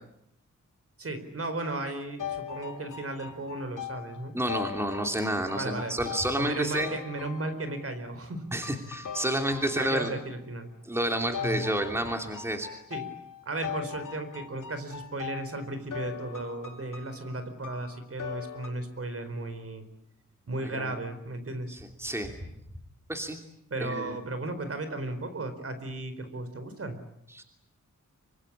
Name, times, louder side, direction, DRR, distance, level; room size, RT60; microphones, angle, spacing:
voice 1, 1.0-4.3 5.5-5.9 6.4-8.4 9.7-10.7 11.4-11.7 12.9-13.1 13.4-19.8 20.5-21.8 23.7-27.0, right 2 dB, 50° right, 10 dB, 4.4 m, -35 dB
sound 1, 2.2-8.0 8.6-10.3 11.3-18.7, left 8 dB, 90° left, 2.9 m, -40 dB
voice 2, 4.3-6.9 8.5-10.1 10.8-12.7 20.6-21.0 21.7-22.3 23.1-23.4 23.8-24.2 27.3-27.4, right 1 dB, 10° right, 4 dB, 2.8 m, -30 dB
26.5 x 25.0 x 8.7 m, 0.79 s
wide cardioid pair, 135°, 31 cm